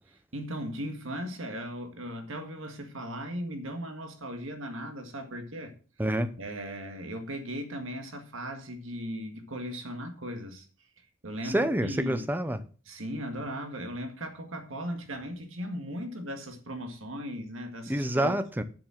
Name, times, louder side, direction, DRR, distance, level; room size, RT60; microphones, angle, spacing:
voice 1, 0.3-5.7 6.4-10.7 11.2-12.3 12.9-18.3, equal, 75° right, 1.9 m, -37 dB
voice 2, 6.0-6.3 11.4-12.6 17.9-18.6, right 1 dB, 10° right, 0.7 m, -27 dB
7.6 x 7.2 x 7.5 m
head